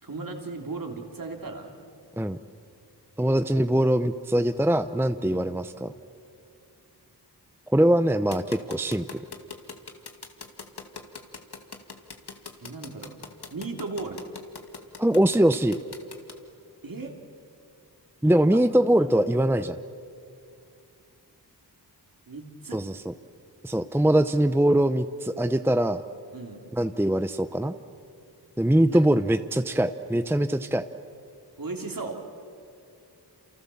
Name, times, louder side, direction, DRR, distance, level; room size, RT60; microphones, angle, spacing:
voice 1, 0.0-1.8 5.2-5.5 12.6-13.2 13.5-14.2 16.8-17.1 18.5-18.6 19.0-19.2 22.3-22.8 26.3-26.6 28.9-29.2 31.6-32.2, right 3 dB, 55° right, 2 dB, 3.4 m, -36 dB
voice 2, 3.2-5.9 7.7-9.0 15.0-15.8 18.2-19.8 22.7-23.1 23.6-26.0 26.7-27.7 28.6-30.8, right 1 dB, 5° right, 10 dB, 0.7 m, -22 dB
sound 1, 8.3-16.3, left 5 dB, 70° left, 2.3 m, -40 dB
29.0 x 28.5 x 7.2 m, 2.4 s
wide cardioid pair, 85°, 41 cm